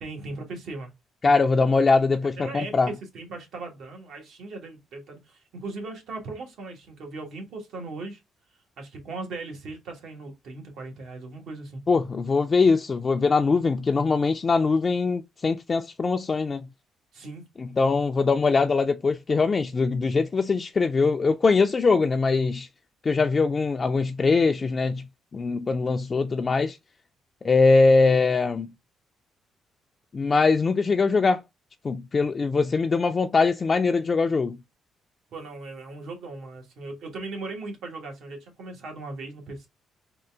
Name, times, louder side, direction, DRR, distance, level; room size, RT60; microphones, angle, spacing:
voice 1, 0.0-0.9 2.4-8.2 8.8-11.8 17.1-17.4 35.3-39.7, right 3 dB, 75° right, 1.3 m, -38 dB
voice 2, 1.2-2.9 11.9-16.7 17.6-22.7 23.0-25.0 25.3-26.8 27.4-28.7 30.1-31.4 31.8-34.6, left 4 dB, 35° left, 0.3 m, -22 dB
3.8 x 2.4 x 3.4 m
cardioid pair, 90°, 0 cm